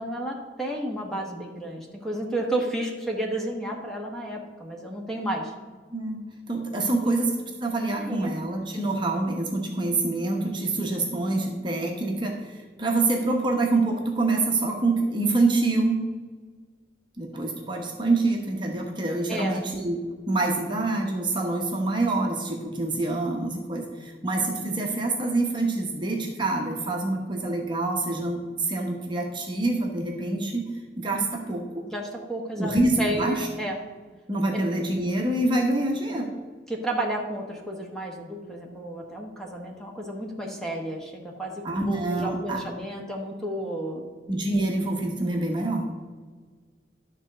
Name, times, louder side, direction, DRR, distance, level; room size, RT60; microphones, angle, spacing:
voice 1, 0.0-5.5 7.0-7.1 7.9-8.3 19.3-19.6 31.9-32.7 33.0-33.8 34.5-34.6 36.7-44.0, right 1 dB, 5° left, -1 dB, 1.3 m, -32 dB
voice 2, 6.5-7.3 7.6-16.0 17.2-20.0 20.3-30.6 31.0-31.8 32.6-33.5 34.3-36.3 41.6-42.6 44.3-45.8, right 2 dB, 25° right, 1 dB, 1.0 m, -26 dB
11.5 x 4.1 x 6.6 m, 1.5 s
head